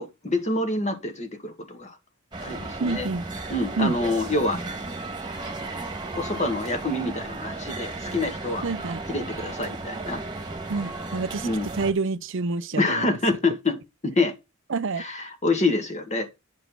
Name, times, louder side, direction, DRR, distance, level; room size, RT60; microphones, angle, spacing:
voice 1, 0.0-2.0 2.4-3.1 3.5-4.6 6.2-8.7 9.1-10.2 11.4-11.7 12.7-14.3 15.0-16.3, left 2 dB, 35° left, 2.1 m, -26 dB
sound 1, 2.3-11.9, right 2 dB, 20° right, 1.7 m, -35 dB
voice 2, 2.8-3.2 3.8-4.0 8.6-9.0 10.7-13.2 14.7-15.0, right 4 dB, 60° right, 0.6 m, -28 dB
10.0 x 5.1 x 6.0 m
head